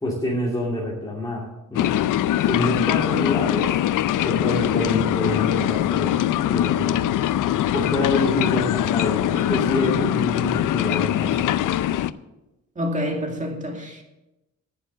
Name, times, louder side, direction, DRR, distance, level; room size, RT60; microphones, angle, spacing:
voice 1, 0.0-1.9 2.4-3.8 4.2-6.1 6.4-7.1 7.7-11.5, left 1 dB, 10° left, 2.5 m, -27 dB
sound 1, 1.7-12.1, left 12 dB, 80° left, 0.5 m, -22 dB
voice 2, 12.8-14.0, equal, 25° right, 2.2 m, -27 dB
11.0 x 10.0 x 6.1 m
cardioid pair, 130°, 31 cm